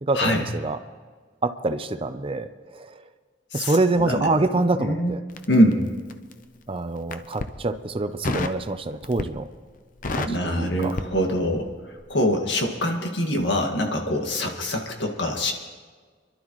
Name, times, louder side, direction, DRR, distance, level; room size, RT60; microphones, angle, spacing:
voice 1, 0.0-0.8 1.4-3.1 3.5-5.2 6.7-9.5 10.2-10.9, right 2 dB, 30° right, 10 dB, 0.6 m, -26 dB
voice 2, 3.5-4.3 4.8-5.2 5.5-5.8 10.2-11.7 12.1-15.5, equal, 75° left, 2 dB, 1.9 m, -24 dB
Crackle, 5.3-6.4 7.0-7.6 8.2-8.6 9.0-9.5 9.8-11.7 12.0-12.2, left 3 dB, 45° left, 0.8 m, -31 dB
28.5 x 12.0 x 3.1 m, 1.5 s
head